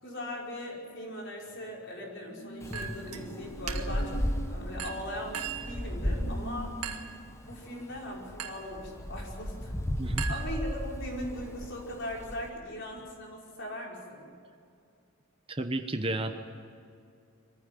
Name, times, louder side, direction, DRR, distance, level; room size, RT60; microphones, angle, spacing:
voice 1, 0.0-6.8 7.5-9.8 10.3-14.3, left 1 dB, 55° left, -2 dB, 5.4 m, -39 dB
sound 1, 1.4-10.4 10.7-11.0, right 2 dB, 35° left, 2.2 m, -46 dB
Wind, 2.6-12.5, equal, 15° left, 1.1 m, -35 dB
Chink clink, 2.7-3.2 3.7-4.1 4.8-5.8 6.8-7.2 8.4-8.7 10.2-11.0, right 7 dB, 85° right, 1.7 m, -39 dB
voice 2, 15.5-16.3, right 2 dB, 25° right, 7 dB, 1.0 m, -32 dB
23.5 x 15.5 x 9.2 m, 2.4 s
head